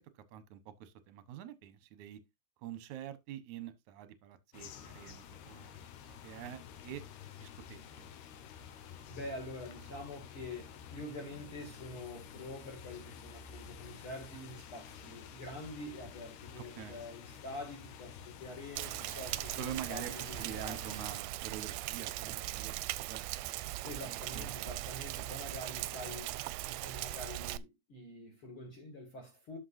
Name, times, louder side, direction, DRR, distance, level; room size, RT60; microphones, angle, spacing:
voice 1, 0.2-2.2 2.6-5.8 6.2-7.0 7.4-7.9 16.6-17.0 19.5-23.3 24.0-24.6, right 10 dB, 65° right, 2.0 m, -46 dB
sound 1, 4.5-21.2, left 8 dB, 75° left, 3.2 m, -51 dB
voice 2, 9.1-20.8 23.8-29.6, left 1 dB, 40° left, 2.6 m, -46 dB
Rain, 18.8-27.6, right 17 dB, 80° right, 2.3 m, -39 dB
12.0 x 6.2 x 2.6 m
omnidirectional pair, 4.7 m